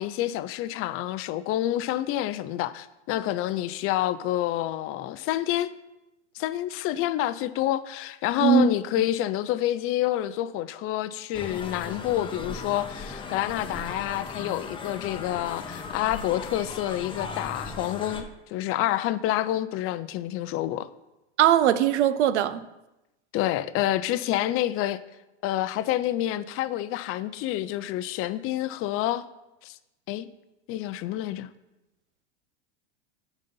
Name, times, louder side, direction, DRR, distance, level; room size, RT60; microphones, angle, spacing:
voice 1, 0.0-5.7 6.4-20.9 23.3-25.0 25.4-29.2 29.6-29.8 30.1-30.3 30.7-31.5, left 13 dB, 40° left, 0.5 m, -28 dB
sound 1, 11.3-18.2, left 4 dB, 15° left, 1.0 m, -37 dB
voice 2, 21.4-22.6, right 10 dB, 75° right, 0.7 m, -20 dB
10.5 x 4.1 x 5.3 m
hypercardioid pair, 105°, 35 cm